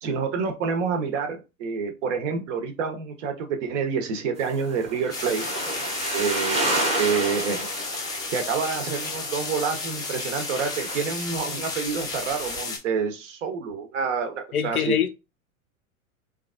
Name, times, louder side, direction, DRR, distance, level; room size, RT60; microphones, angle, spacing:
voice 1, 0.0-5.4 6.1-6.7 7.0-7.7 8.3-14.9, right 5 dB, 60° right, 0.9 m, -28 dB
sound 1, 4.4-12.6, right 1 dB, 15° right, 0.9 m, -31 dB
sound 2, 5.1-12.8, left 4 dB, 10° left, 0.4 m, -33 dB
voice 2, 14.5-15.1, left 8 dB, 85° left, 0.6 m, -24 dB
3.2 x 2.4 x 2.4 m
figure-of-eight pair, 95°, 42 cm